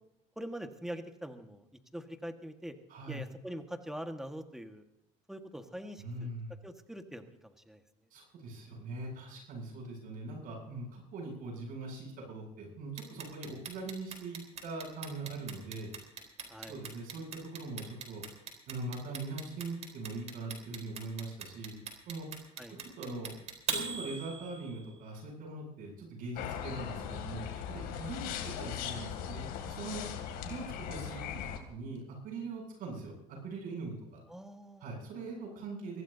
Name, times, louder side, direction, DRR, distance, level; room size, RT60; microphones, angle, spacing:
voice 1, 0.4-1.6 1.9-2.7 3.1-4.8 5.3-6.3 6.6-7.8 16.5-16.8 22.6-22.8 34.3-34.9, equal, 5° right, 6 dB, 1.7 m, -43 dB
voice 2, 2.9-3.2 6.0-6.5 8.1-15.9 16.7-18.2 18.7-21.8 22.1-22.3 22.7-23.3 23.7-30.0 30.4-34.2 34.8-36.0, right 3 dB, 60° right, 0 dB, 7.9 m, -42 dB
Clock, 13.0-25.0, right 6 dB, 40° right, 4.2 m, -40 dB
sound 1, 26.4-31.6, left 9 dB, 65° left, 2.8 m, -39 dB
23.5 x 16.0 x 2.8 m, 0.83 s
supercardioid pair, 110°, 17 cm